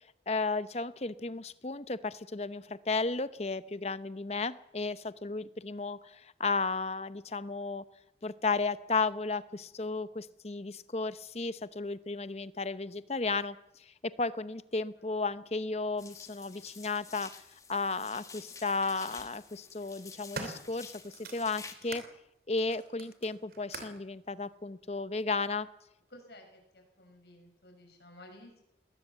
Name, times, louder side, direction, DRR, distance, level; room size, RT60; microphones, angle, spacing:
voice 1, 0.3-7.8 8.2-13.6 13.9-17.4 17.7-22.0 22.5-25.7, left 3 dB, 35° left, 15 dB, 0.8 m, -34 dB
sound 1, 16.0-21.7, left 5 dB, 20° left, 1.7 m, -50 dB
sound 2, 17.7-17.8 18.9-19.3 19.8-22.1 22.6-24.1 24.9-25.0, right 3 dB, 55° right, 3.1 m, -45 dB
voice 2, 26.1-28.6, left 1 dB, 70° left, 4 dB, 6.5 m, -54 dB
20.5 x 18.5 x 7.5 m, 0.84 s
head